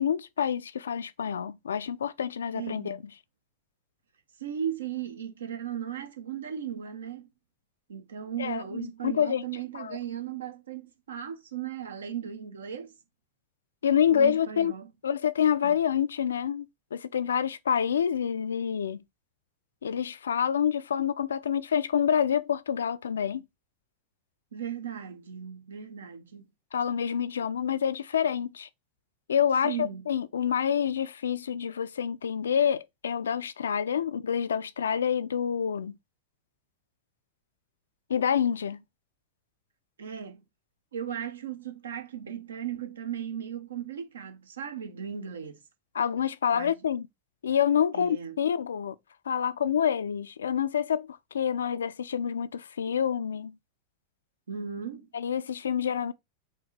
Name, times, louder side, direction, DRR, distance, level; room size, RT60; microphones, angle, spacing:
voice 1, 0.0-3.0 8.4-9.4 9.7-10.0 13.8-14.7 15.0-19.0 19.8-23.4 26.7-28.7 29.3-36.0 38.1-38.8 45.9-47.0 47.4-48.9 49.3-51.1 51.3-53.5 55.1-56.1, left 8 dB, 65° left, 0.3 m, -27 dB
voice 2, 2.5-3.0 4.4-7.3 7.9-12.9 14.1-14.9 15.6-15.8 24.5-26.5 29.6-30.0 40.0-40.4 40.9-45.6 46.5-46.7 47.9-48.4 54.5-55.1, right 8 dB, 65° right, 0.7 m, -36 dB
4.4 x 2.8 x 3.1 m
figure-of-eight pair, 90°, 0 cm